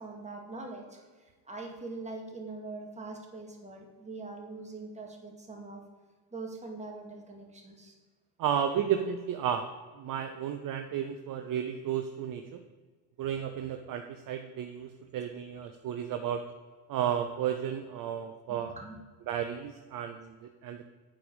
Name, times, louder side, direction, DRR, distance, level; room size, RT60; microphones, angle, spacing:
voice 1, 0.0-5.8 6.3-7.9 18.5-19.0, right 3 dB, 15° right, 1 dB, 2.1 m, -43 dB
voice 2, 8.4-9.7 10.0-12.6 13.2-16.4 16.9-18.7 19.3-20.8, right 9 dB, 40° right, 6 dB, 0.8 m, -33 dB
8.8 x 4.8 x 7.1 m, 1.4 s
supercardioid pair, 95°, 49 cm